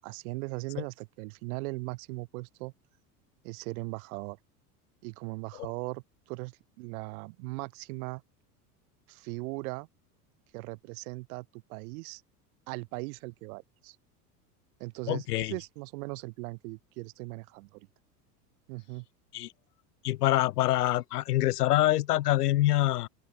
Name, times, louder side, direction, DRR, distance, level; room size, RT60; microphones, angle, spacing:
voice 1, 0.0-2.7 3.4-4.4 5.0-8.2 9.1-9.9 10.5-12.2 12.7-14.0 14.8-17.9 18.7-19.0, right 26 dB, 60° right, 6.2 m, -39 dB
voice 2, 15.1-15.5 19.3-19.5 20.0-23.1, left 15 dB, 70° left, 2.3 m, -25 dB
open air
hypercardioid pair, 85°, 47 cm